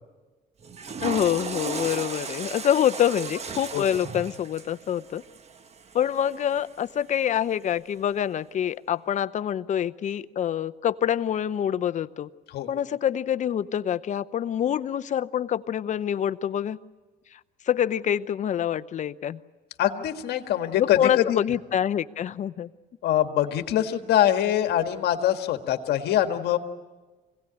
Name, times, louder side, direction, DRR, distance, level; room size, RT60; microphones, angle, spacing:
Water / Toilet flush, 0.6-6.8, right 5 dB, 40° right, 1.2 m, -36 dB
voice 1, 1.0-5.2 5.9-12.3 12.7-16.8 17.3-17.4 17.7-19.4 20.8-22.7, left 10 dB, 45° left, 14 dB, 0.7 m, -26 dB
voice 2, 19.8-21.4 23.0-26.6, left 11 dB, 75° left, 7 dB, 1.7 m, -24 dB
25.0 x 17.5 x 10.0 m, 1.3 s
cardioid pair, 110°, 17 cm